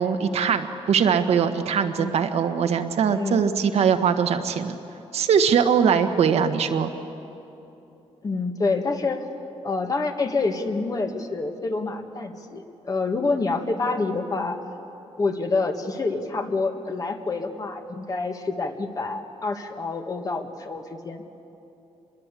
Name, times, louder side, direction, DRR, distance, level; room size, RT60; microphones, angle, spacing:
voice 1, 0.0-4.8 5.1-6.9, right 7 dB, 70° right, 6 dB, 1.4 m, -21 dB
voice 2, 3.1-3.4 8.2-9.2 9.6-14.6 15.2-21.2, left 3 dB, 35° left, 5 dB, 1.8 m, -27 dB
25.5 x 22.0 x 8.4 m, 2.9 s
cardioid pair, 125°, 11 cm